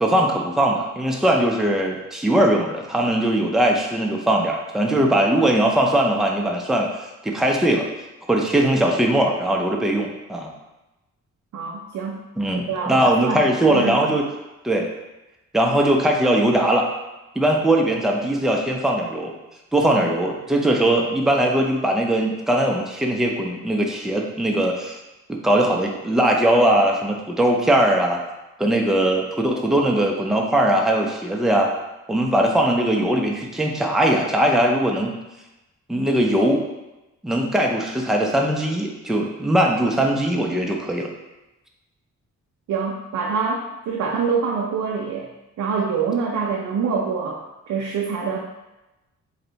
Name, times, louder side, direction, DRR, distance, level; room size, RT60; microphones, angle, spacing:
voice 1, 0.0-6.9 7.2-7.8 8.3-10.5 12.4-14.2 14.6-14.9 15.5-16.9 17.4-19.3 19.7-25.0 25.3-28.2 28.6-31.7 32.1-35.1 35.9-36.6 37.2-41.1, right 1 dB, ahead, 0 dB, 0.5 m, -20 dB
voice 2, 11.5-12.2 12.7-13.4 13.7-14.0 42.7-45.3 45.6-47.4 47.7-48.4, right 5 dB, 70° right, -2 dB, 0.5 m, -25 dB
3.3 x 2.6 x 3.9 m, 1.0 s
cardioid pair, 100°, 30 cm